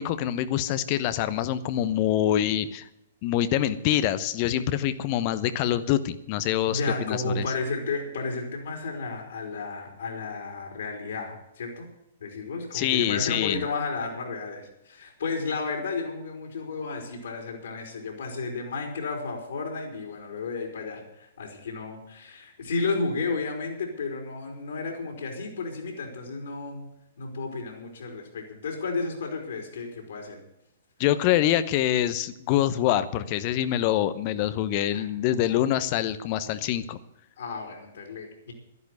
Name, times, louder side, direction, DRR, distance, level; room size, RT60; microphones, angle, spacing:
voice 1, 0.0-2.9 3.2-7.4 12.7-13.7 31.0-37.0, left 12 dB, 40° left, 13 dB, 0.9 m, -25 dB
voice 2, 6.7-11.9 12.2-26.9 27.2-30.4 34.9-35.0 35.5-35.7 37.4-38.5, left 4 dB, 70° left, 2 dB, 3.9 m, -32 dB
12.0 x 11.0 x 8.1 m, 0.81 s
figure-of-eight pair, 115°, 0 cm